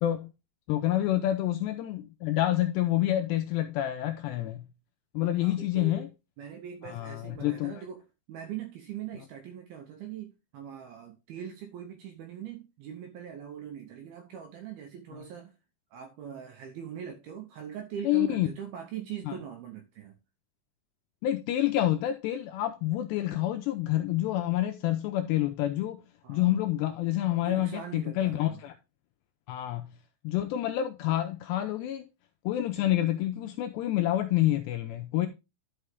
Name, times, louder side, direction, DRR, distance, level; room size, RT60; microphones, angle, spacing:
voice 1, 0.0-0.3 0.7-4.7 5.1-6.1 6.9-7.8 18.0-18.5 19.3-19.4 21.2-26.0 26.3-28.7 29.5-29.9 30.2-32.0 32.5-35.3, left 13 dB, 85° left, 2.5 m, -28 dB
voice 2, 5.4-6.1 6.4-15.5 15.9-20.2 26.2-26.6 27.4-28.6, right 9 dB, 75° right, 2.3 m, -42 dB
11.0 x 5.5 x 3.5 m
omnidirectional pair, 5.5 m